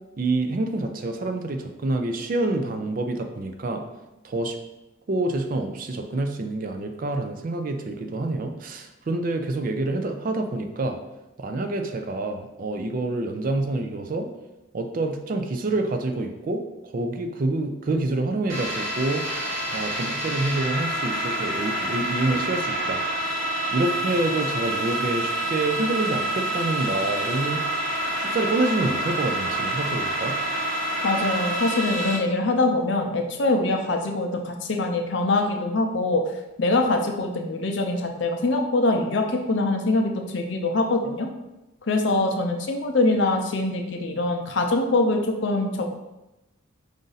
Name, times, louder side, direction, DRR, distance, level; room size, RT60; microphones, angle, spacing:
voice 1, 0.2-3.8 4.2-4.6 5.1-11.0 11.4-14.3 14.7-23.4 23.7-27.6 28.2-30.3, right 2 dB, 45° right, 5 dB, 0.4 m, -27 dB
sound 1, 18.5-32.2, right 1 dB, 85° right, 0.9 m, -27 dB
voice 2, 31.0-36.3 36.6-41.3 41.9-45.8, left 2 dB, 60° left, 3 dB, 0.6 m, -23 dB
4.9 x 2.6 x 3.9 m, 0.98 s
head